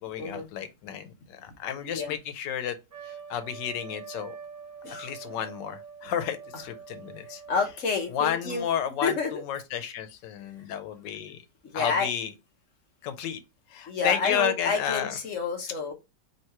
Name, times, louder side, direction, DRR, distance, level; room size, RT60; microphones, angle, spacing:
voice 1, 0.0-2.8 3.0-4.3 5.0-7.4 8.1-11.4 11.7-12.3 13.0-13.4 13.7-15.1, left 9 dB, 85° left, 1.3 m, -32 dB
Trumpet, 2.9-7.9, right 6 dB, 40° right, 1.0 m, -44 dB
voice 2, 7.5-8.6 9.0-9.4 11.7-12.1 13.9-15.9, left 4 dB, 55° left, 0.9 m, -29 dB
3.0 x 2.9 x 4.4 m
omnidirectional pair, 1.9 m